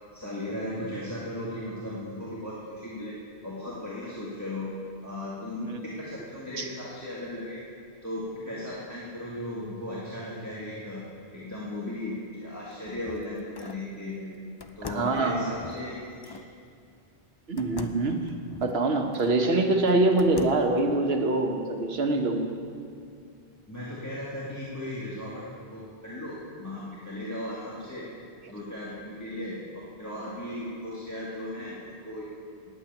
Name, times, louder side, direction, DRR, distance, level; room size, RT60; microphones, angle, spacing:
voice 1, 0.1-3.1 3.4-4.7 5.0-7.6 8.0-11.0 11.3-14.3 14.8-16.3 23.7-28.1 28.5-32.7, left 1 dB, 15° left, -8 dB, 1.6 m, -36 dB
sound 1, 12.5-13.9 14.6-16.5 17.6-19.4 19.9-20.8, left 4 dB, 35° left, 0.4 m, -44 dB
voice 2, 14.9-15.5 17.5-18.2 18.6-22.5, right 2 dB, 75° right, 4 dB, 1.3 m, -24 dB
9.1 x 8.8 x 9.1 m, 2.4 s
omnidirectional pair, 1.0 m